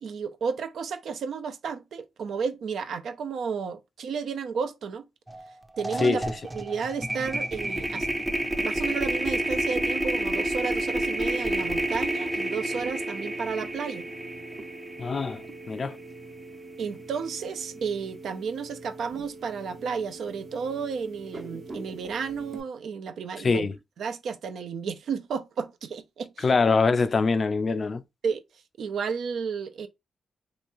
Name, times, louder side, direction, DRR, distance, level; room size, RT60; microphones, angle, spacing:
voice 1, 0.0-5.1 5.8-8.1 8.3-14.1 16.8-23.7 24.0-26.5 28.2-28.4 28.8-29.9, right 6 dB, 70° right, 0.4 m, -32 dB
sound 1, 5.3-5.4 5.7-16.0, right 1 dB, 15° right, 0.5 m, -29 dB
sound 2, 10.9-22.6, right 2 dB, 45° right, 0.7 m, -44 dB
voice 2, 15.0-15.4 15.7-16.0 23.4-23.7 26.4-28.0, left 4 dB, 50° left, 0.4 m, -23 dB
3.0 x 2.3 x 2.5 m
supercardioid pair, 50°, 0 cm